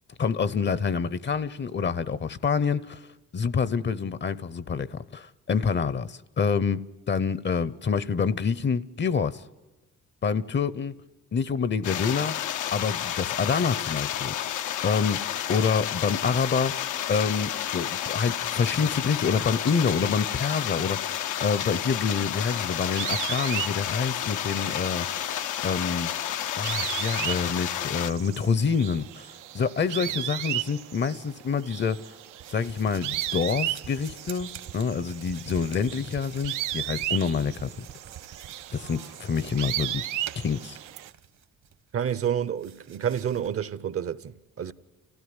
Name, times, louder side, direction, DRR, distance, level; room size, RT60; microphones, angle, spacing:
voice 1, 0.2-3.1 3.3-9.4 10.2-10.9 11.3-12.3 12.7-14.3 14.8-16.7 17.1-25.4 25.6-26.1 26.6-29.3 29.5-32.1 32.5-37.7 38.7-40.0 40.4-40.8, left 6 dB, 35° left, 0.7 m, -27 dB
sound 1, 11.8-28.1, left 11 dB, 80° left, 0.7 m, -31 dB
sound 2, 22.6-41.1, right 13 dB, 90° right, 0.7 m, -35 dB
sound 3, 32.4-41.8 42.1-43.5, right 9 dB, 65° right, 1.3 m, -47 dB
voice 2, 41.9-44.7, right 9 dB, 50° right, 0.8 m, -29 dB
28.5 x 16.0 x 9.7 m
cardioid pair, 90°, 30 cm